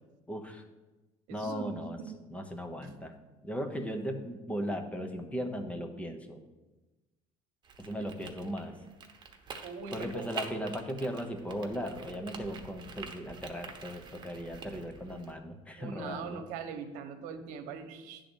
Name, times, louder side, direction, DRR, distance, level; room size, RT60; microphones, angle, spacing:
voice 1, 0.3-0.6 1.3-2.0 2.3-3.1 3.4-6.4 7.8-8.8 9.9-16.4, equal, 10° left, 6 dB, 0.9 m, -37 dB
voice 2, 1.3-2.2 9.6-10.3 15.8-18.2, right 6 dB, 85° right, 7 dB, 1.1 m, -41 dB
sound 1, 7.6-15.3, right 5 dB, 35° right, 1.1 m, -46 dB
10.0 x 3.9 x 7.0 m, 1.1 s
cardioid pair, 125°, 13 cm